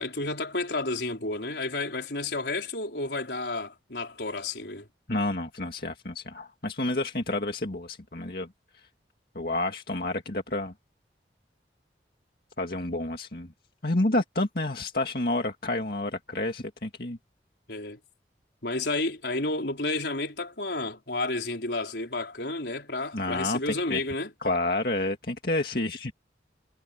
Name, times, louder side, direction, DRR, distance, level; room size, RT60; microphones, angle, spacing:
voice 1, 0.0-4.9 17.7-18.0 18.6-24.3, left 2 dB, 80° left, 4.3 m, -31 dB
voice 2, 5.1-8.5 9.4-10.7 12.6-13.5 13.8-17.2 23.1-24.0 24.4-26.1, left 2 dB, 55° left, 2.2 m, -29 dB
head